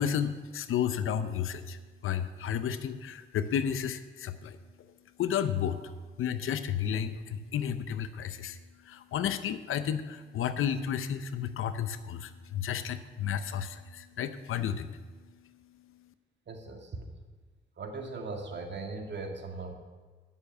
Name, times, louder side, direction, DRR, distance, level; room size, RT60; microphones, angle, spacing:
voice 1, 0.0-16.1, left 8 dB, 80° left, 12 dB, 0.7 m, -33 dB
voice 2, 16.5-17.1 17.8-19.8, right 3 dB, 55° right, 3 dB, 2.1 m, -39 dB
9.5 x 7.0 x 9.0 m, 1.4 s
supercardioid pair, 60°, 21 cm